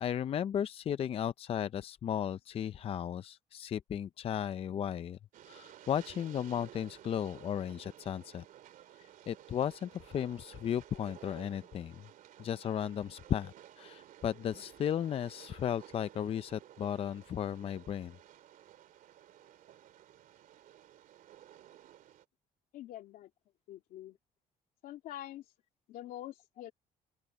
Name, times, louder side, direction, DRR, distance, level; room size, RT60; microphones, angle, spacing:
voice 1, 0.0-5.2 5.5-8.4 9.3-11.9 12.4-18.2, left 9 dB, 40° left, 0.5 m, -35 dB
Train, 5.3-22.2, right 12 dB, 65° right, 2.9 m, -55 dB
voice 2, 22.7-23.3 23.7-24.2 24.8-25.4 25.9-26.7, left 13 dB, 80° left, 2.8 m, -45 dB
open air
cardioid pair, 120°, 15 cm